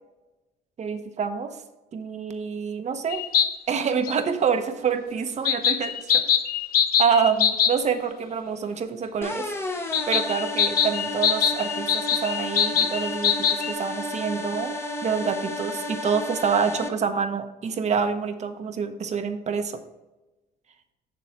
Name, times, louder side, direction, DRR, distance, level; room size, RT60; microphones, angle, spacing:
voice 1, 0.8-1.6 1.9-3.2 3.7-6.2 7.0-9.5 10.1-14.7 15.0-19.8, right 6 dB, 40° right, 8 dB, 1.0 m, -27 dB
sound 1, 3.1-3.5 4.1-4.2 5.4-7.7 9.9-13.7, left 8 dB, 60° left, 0.8 m, -23 dB
sound 2, 9.2-16.9, left 1 dB, 15° left, 1.0 m, -32 dB
7.0 x 6.9 x 4.5 m, 1.1 s
cardioid pair, 110°, 17 cm